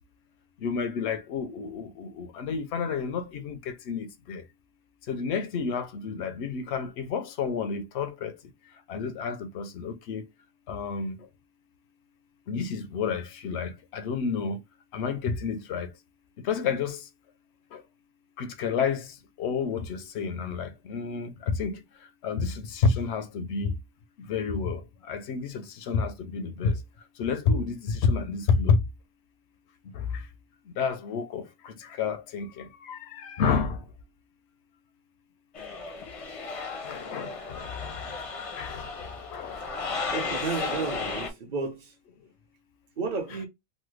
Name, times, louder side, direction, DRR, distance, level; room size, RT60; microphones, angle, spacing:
voice 1, 0.6-3.6 3.9-4.4 5.1-8.3 8.9-10.2 10.7-11.1 12.5-14.6 14.9-15.9 16.5-17.0 18.4-19.0 19.4-21.3 21.6-21.7 22.2-23.7 24.3-24.8 25.1-25.5 25.9-26.7 27.2-27.8 28.0-28.8 30.8-31.4 32.0-32.5 32.9-33.0 33.3-33.8 36.8-37.9 38.6-38.8 39.3-39.5, left 5 dB, 85° left, 0.9 m, -29 dB
sound 1, 35.5-41.3, left 4 dB, 40° left, 0.6 m, -34 dB
voice 2, 40.1-41.9 43.0-43.4, right 4 dB, 45° right, 1.0 m, -32 dB
3.1 x 2.1 x 3.1 m
omnidirectional pair, 1.1 m